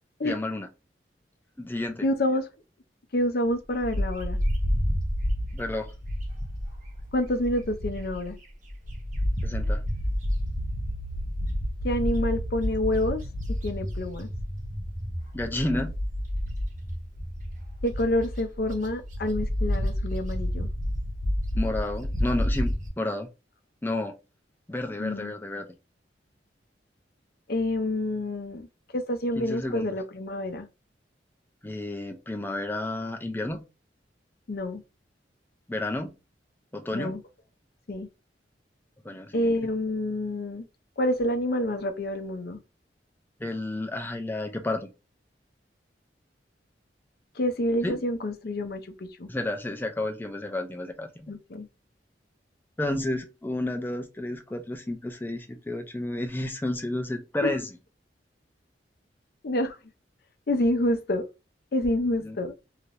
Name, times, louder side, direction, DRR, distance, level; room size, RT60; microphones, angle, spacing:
voice 1, 0.2-0.7 1.6-2.1 5.5-5.9 9.4-9.8 15.3-15.9 21.5-23.3 23.8-24.1 24.7-25.7 29.4-29.9 31.6-33.7 35.7-36.1 36.7-37.2 39.0-39.6 43.4-44.9 47.8-48.0 49.3-51.4 52.8-57.7 62.2-62.4, left 1 dB, 10° left, 0.4 m, -31 dB
voice 2, 2.0-2.5 3.1-4.4 7.1-8.4 11.8-13.2 13.5-14.3 17.8-20.7 25.0-25.3 27.5-28.7 28.9-30.7 34.5-34.8 36.9-37.2 37.9-38.1 39.3-40.7 41.0-42.6 47.4-49.3 51.3-51.7 57.4-57.5 59.4-59.8 60.5-61.2 61.7-62.5, left 1 dB, 55° left, 0.6 m, -28 dB
Bird, 3.8-8.3 8.7-22.9, equal, 45° right, 1.0 m, -30 dB
3.2 x 2.8 x 2.6 m
head